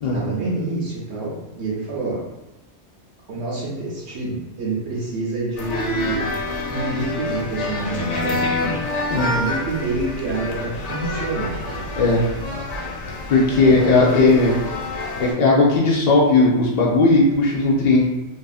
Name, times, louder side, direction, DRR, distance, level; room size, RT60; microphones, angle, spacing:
voice 1, 0.0-2.2 3.3-6.3 6.7-8.8 9.3-11.7 13.7-14.4, right 2 dB, 75° right, -5 dB, 0.9 m, -27 dB
sound 1, 5.6-15.3, left 2 dB, 90° left, 0.9 m, -27 dB
voice 2, 13.3-14.5 15.2-18.1, left 3 dB, 55° left, -4 dB, 0.5 m, -16 dB
2.6 x 2.5 x 2.3 m, 0.99 s
omnidirectional pair, 1.2 m